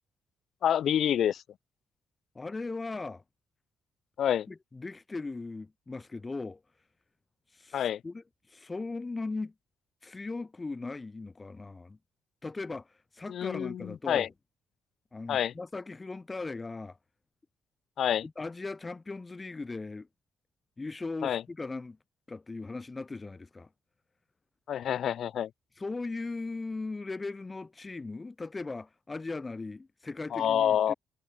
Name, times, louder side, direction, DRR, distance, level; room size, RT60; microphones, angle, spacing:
voice 1, 0.6-1.4 4.2-4.5 7.7-8.0 13.3-14.3 15.3-15.5 18.0-18.2 21.2-21.4 24.7-25.5 30.3-30.9, left 10 dB, 70° left, 0.4 m, -27 dB
voice 2, 2.3-3.2 4.5-6.6 7.5-9.5 10.0-12.0 12.4-14.3 15.1-17.0 18.2-20.1 20.8-22.0 22.3-23.7 25.8-30.9, left 3 dB, 30° left, 1.4 m, -38 dB
supercardioid pair, 55°, 0 cm